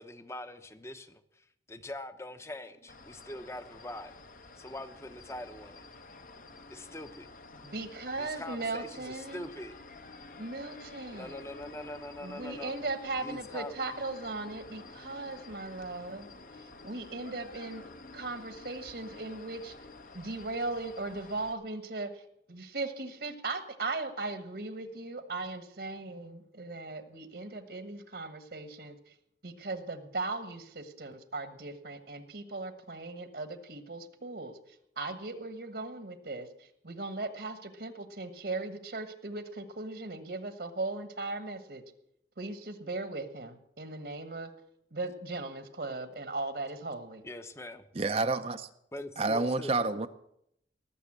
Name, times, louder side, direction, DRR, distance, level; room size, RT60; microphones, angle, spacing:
voice 1, 0.0-4.1 4.6-5.8 6.7-7.3 8.2-9.7 11.1-12.7 13.2-13.8 47.2-47.9 48.9-49.9, left 1 dB, 15° left, 0.9 m, -43 dB
sound 1, 2.0-20.1, left 1 dB, 90° left, 1.8 m, -55 dB
sound 2, 2.9-21.5, left 3 dB, 50° left, 1.0 m, -51 dB
voice 2, 7.6-9.5 10.4-11.4 12.2-16.4 16.8-17.8 18.1-19.7 20.1-22.2 22.5-28.9 29.4-34.5 35.0-36.5 36.8-41.8 42.4-44.5 44.9-47.2, right 3 dB, 65° right, 1.3 m, -38 dB
voice 3, 48.0-48.7 49.2-50.1, right 3 dB, 35° right, 0.6 m, -29 dB
18.5 x 7.2 x 8.6 m
head